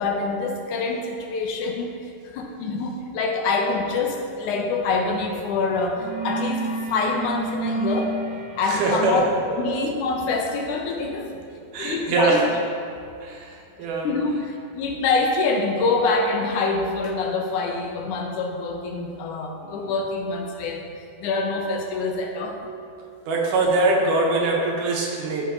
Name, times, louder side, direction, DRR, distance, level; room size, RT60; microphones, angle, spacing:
voice 1, 0.0-8.2 8.6-9.2 9.6-11.4 11.8-12.5 14.0-22.6, left 3 dB, 75° left, 2 dB, 2.1 m, -26 dB
sound 1, 5.2-5.5 5.7-12.4, right 3 dB, 55° right, 1.1 m, -33 dB
voice 2, 8.7-9.2 9.5-9.8 11.7-12.5 13.2-14.1 19.6-19.9 23.3-25.5, right 3 dB, 75° right, -1 dB, 2.5 m, -23 dB
13.0 x 4.6 x 3.8 m, 2.5 s
omnidirectional pair, 3.7 m